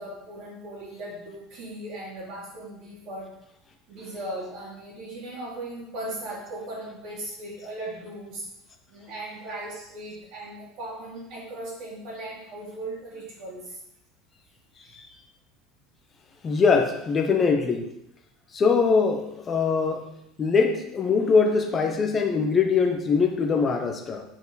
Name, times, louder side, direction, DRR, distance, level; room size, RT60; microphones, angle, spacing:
voice 1, 0.0-3.3 3.9-8.5 8.9-13.8 14.8-15.0, right 1 dB, 50° right, -5 dB, 2.9 m, -38 dB
voice 2, 16.4-17.9 18.5-20.1 20.4-24.2, left 5 dB, 20° left, 4 dB, 0.8 m, -22 dB
9.4 x 4.6 x 4.1 m, 0.78 s
cardioid pair, 165°, 0 cm